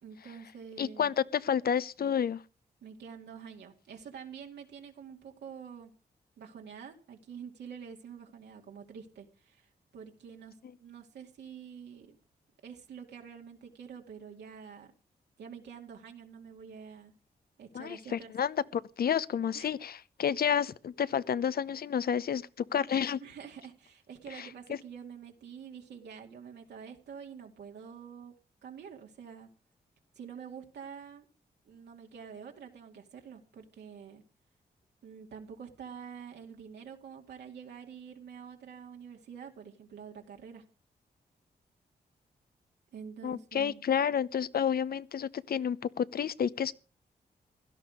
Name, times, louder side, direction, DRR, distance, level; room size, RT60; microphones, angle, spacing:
voice 1, 0.0-1.1 2.8-5.9 6.4-12.2 12.6-14.9 15.4-17.1 17.6-18.3 19.5-19.7 23.2-28.3 28.6-29.5 30.2-31.3 31.6-34.2 35.0-40.6 42.9-43.8, right 7 dB, 90° right, 2.3 m, -47 dB
voice 2, 0.8-2.4 17.7-23.2 24.3-24.8 43.2-46.7, left 8 dB, 65° left, 0.8 m, -30 dB
16.5 x 12.0 x 5.0 m
cardioid pair, 55°, 17 cm